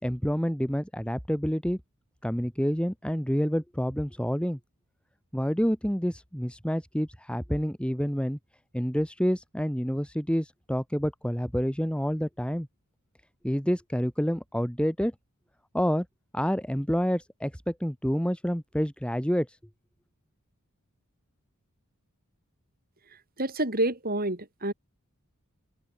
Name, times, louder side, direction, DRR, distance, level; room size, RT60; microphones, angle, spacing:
voice 1, 0.0-1.8 2.2-4.6 5.3-8.4 8.7-12.7 13.4-15.1 15.7-16.1 16.3-19.5, equal, 5° left, 4.2 m, -28 dB
voice 2, 23.4-24.7, right 2 dB, 45° right, 6.6 m, -28 dB
head